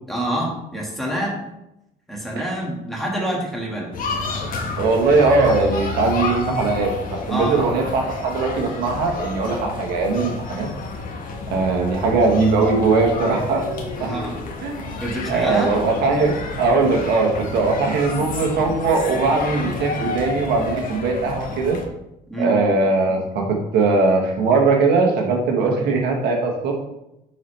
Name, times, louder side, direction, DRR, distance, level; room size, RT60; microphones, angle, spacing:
voice 1, 0.1-1.4 2.1-3.9 7.3-7.7 14.0-14.4 15.0-15.8 22.3-22.5, right 1 dB, ahead, -4 dB, 1.8 m, -26 dB
sound 1, 3.9-21.8, left 3 dB, 55° left, 1.1 m, -30 dB
voice 2, 4.8-10.7 11.5-13.6 14.6-14.9 15.3-21.8 22.4-26.7, right 3 dB, 75° right, 1 dB, 1.2 m, -20 dB
7.1 x 4.2 x 3.3 m, 0.87 s
cardioid pair, 110°, 17 cm